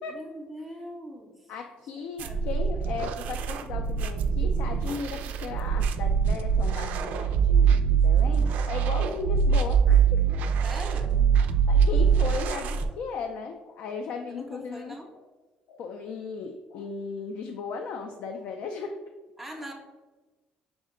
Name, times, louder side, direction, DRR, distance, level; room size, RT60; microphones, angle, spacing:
voice 1, 0.1-1.5 2.2-2.5 10.6-11.2 14.3-15.1 19.4-19.7, right 1 dB, 10° right, 1 dB, 0.5 m, -41 dB
voice 2, 1.5-10.4 11.7-14.9 15.7-19.0, left 4 dB, 65° left, 4 dB, 0.3 m, -36 dB
sound 1, 2.2-12.9, right 6 dB, 70° right, 0.3 m, -23 dB
5.8 x 2.1 x 3.7 m, 1.2 s
cardioid pair, 155°, 3 cm